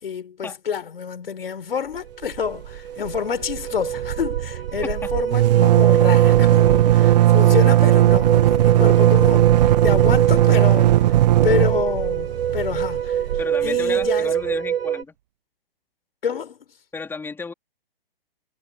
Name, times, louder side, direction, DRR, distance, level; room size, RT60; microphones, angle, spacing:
voice 1, 0.0-9.5 9.8-13.2 13.6-14.3 16.2-16.6, left 7 dB, 70° left, 4.5 m, -28 dB
sound 1, 2.1-2.2 2.5-15.0, right 9 dB, 75° right, 2.1 m, -24 dB
sound 2, 2.2-2.8 3.1-3.2 3.4-14.1, right 14 dB, 45° right, 0.9 m, -17 dB
voice 2, 13.4-15.1 16.9-17.5, left 4 dB, 5° left, 4.0 m, -33 dB
hypercardioid pair, 135°, 30 cm